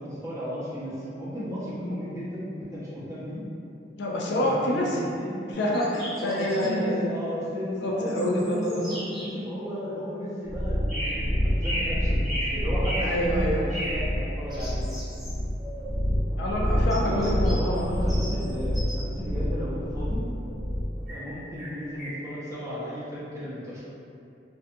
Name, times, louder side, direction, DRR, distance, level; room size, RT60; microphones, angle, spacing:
voice 1, 0.0-3.4 4.3-5.4 6.2-14.9 17.0-20.3 21.1-23.8, equal, 15° right, -10 dB, 0.5 m, -34 dB
voice 2, 4.0-5.0 5.5-7.0 7.8-9.0 13.0-13.7 16.4-17.8, left 1 dB, 70° left, -2 dB, 0.4 m, -27 dB
sound 1, 5.5-6.7 8.1-9.3 10.9-11.2 11.6-13.1 13.7-14.0 14.5-15.9 16.9-19.1 19.5-21.2 21.5-22.2, equal, ahead, 1.0 m, -36 dB
sound 2, 10.5-21.0, equal, 60° right, 0.9 m, -27 dB
2.5 x 2.4 x 2.6 m, 2.6 s
head